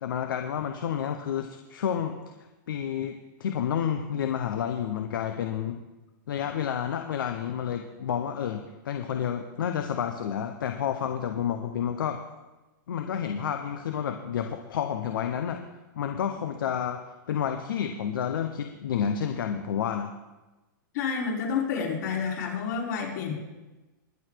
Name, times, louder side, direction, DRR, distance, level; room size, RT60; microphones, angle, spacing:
voice 1, 0.0-2.2 2.7-5.8 6.3-12.2 12.9-15.6 15.9-17.0 17.3-20.1, left 8 dB, 75° left, 6 dB, 1.1 m, -30 dB
voice 2, 20.9-23.3, left 6 dB, 60° left, -1 dB, 4.1 m, -29 dB
21.0 x 7.0 x 4.7 m, 1.1 s
hypercardioid pair, 135°, 11 cm